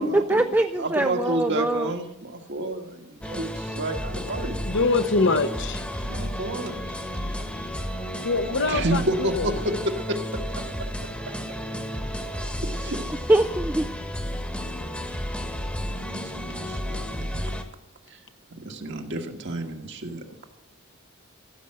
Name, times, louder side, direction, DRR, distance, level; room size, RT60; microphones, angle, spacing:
voice 1, 0.0-1.9 13.3-13.9, right 1 dB, 10° right, 0.5 m, -22 dB
voice 2, 0.8-4.6 6.0-6.7 8.5-11.3 12.6-13.0 15.7-17.5 18.1-18.2 18.6-20.2, right 1 dB, 60° right, 1.7 m, -31 dB
sound 1, 3.2-17.6, equal, 5° left, 1.3 m, -32 dB
voice 3, 4.4-5.8 8.2-9.6, left 3 dB, 60° left, 1.0 m, -24 dB
15.5 x 7.1 x 7.7 m
head